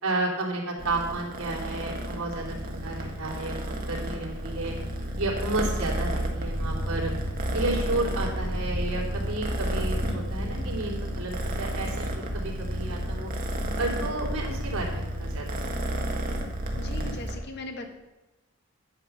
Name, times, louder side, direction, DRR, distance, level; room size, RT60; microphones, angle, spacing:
voice 1, 0.0-4.7 5.2-7.1 7.5-13.3 13.8-16.1, right 2 dB, 80° right, -1 dB, 3.1 m, -32 dB
Purr, 0.8-17.3, right 1 dB, 40° right, 1.6 m, -31 dB
sound 1, 10.1-13.9, left 1 dB, 75° left, 4.1 m, -51 dB
voice 2, 16.8-17.9, left 2 dB, 50° left, 4 dB, 1.5 m, -38 dB
11.0 x 7.8 x 5.6 m, 1.1 s
head